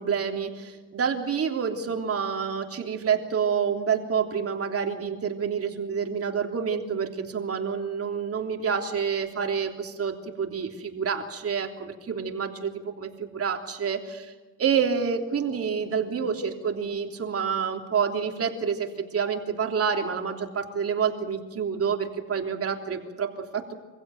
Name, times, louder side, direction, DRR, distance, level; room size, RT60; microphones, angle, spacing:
voice 1, 0.0-14.3 14.6-23.7, right 6 dB, 50° right, 3 dB, 3.3 m, -28 dB
25.5 x 16.0 x 9.2 m, 1.3 s
cardioid pair, 90°, 30 cm